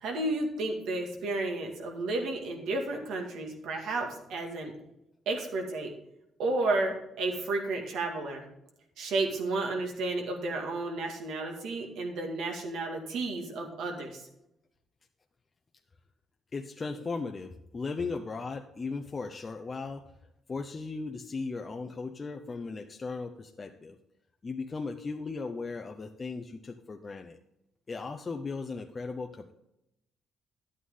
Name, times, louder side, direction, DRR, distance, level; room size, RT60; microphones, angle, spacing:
voice 1, 0.0-4.7 5.3-5.9 6.4-8.4 9.0-14.2, right 2 dB, 80° right, 2 dB, 2.0 m, -32 dB
voice 2, 16.5-20.0 20.5-24.0 24.4-27.4 27.9-29.5, left 4 dB, 35° left, 4 dB, 0.7 m, -37 dB
11.0 x 8.6 x 3.7 m, 0.85 s
cardioid pair, 90°, 0 cm